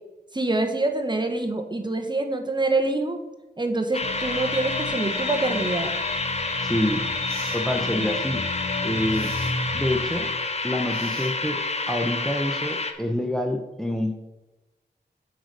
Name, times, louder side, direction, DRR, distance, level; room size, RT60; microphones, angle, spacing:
voice 1, 0.3-3.2 3.6-5.9 7.9-8.1, right 2 dB, 25° right, 4 dB, 1.2 m, -25 dB
sound 1, 3.9-12.9, left 3 dB, 35° left, 0.9 m, -29 dB
sound 2, 4.0-10.3, left 2 dB, 85° left, 1.8 m, -33 dB
sound 3, 6.4-6.5 7.3-7.7 9.1-9.6 10.9-11.6, right 3 dB, 60° right, 2.0 m, -44 dB
voice 2, 6.6-7.0 7.5-8.4 8.8-9.3 9.7-10.3 10.6-11.6 11.9-14.1, left 1 dB, ahead, 3 dB, 0.8 m, -27 dB
7.9 x 5.0 x 6.6 m, 1.0 s
wide cardioid pair, 75°, 18 cm